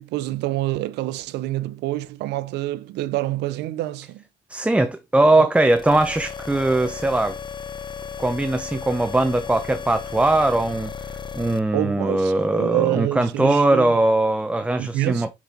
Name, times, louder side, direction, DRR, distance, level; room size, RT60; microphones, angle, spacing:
voice 1, 0.0-4.2 5.4-5.5 11.7-14.0 14.8-15.3, right 16 dB, 85° right, 0.8 m, -27 dB
voice 2, 4.5-7.4 8.2-10.9 11.3-15.3, right 2 dB, 5° right, 0.7 m, -20 dB
sound 1, 5.6-11.6, left 6 dB, 25° left, 0.9 m, -35 dB
7.5 x 5.3 x 3.9 m
cardioid pair, 110°, 17 cm